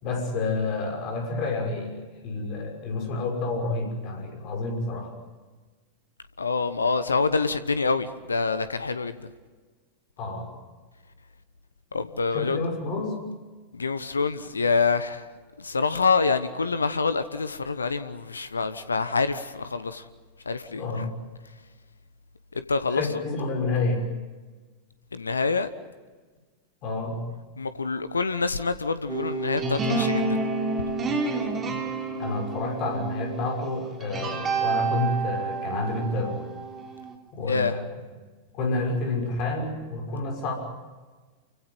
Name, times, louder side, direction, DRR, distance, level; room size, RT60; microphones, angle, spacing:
voice 1, 0.0-5.1 10.2-10.5 12.3-13.2 20.7-21.1 22.9-24.1 26.8-27.2 32.2-36.4 37.3-37.8 38.5-40.5, left 3 dB, 40° left, 6.0 m, -29 dB
voice 2, 6.4-9.3 11.9-12.6 13.7-15.3 15.6-20.1 20.4-21.1 22.5-23.2 25.1-25.7 27.6-30.4 37.5-37.7, left 4 dB, 75° left, 1.0 m, -26 dB
sound 1, 29.1-37.1, right 3 dB, 25° right, 3.7 m, -29 dB
29.0 x 16.5 x 9.5 m
figure-of-eight pair, 90°, 0 cm